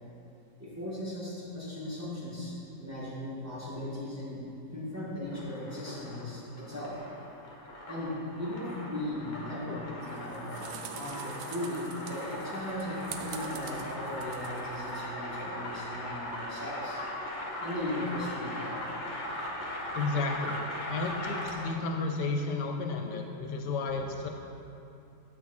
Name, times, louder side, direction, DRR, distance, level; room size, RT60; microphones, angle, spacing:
voice 1, 0.6-4.4 4.7-6.9 7.9-17.0 17.6-18.8, left 1 dB, 10° right, -9 dB, 1.8 m, -37 dB
sound 1, 5.1-21.8, left 1 dB, 35° left, 0.8 m, -39 dB
sound 2, 10.0-15.0, right 7 dB, 70° right, 0.9 m, -46 dB
voice 2, 19.9-20.6 20.9-24.3, left 3 dB, 80° left, 3 dB, 1.2 m, -32 dB
8.4 x 6.2 x 4.3 m, 2.8 s
omnidirectional pair, 1.8 m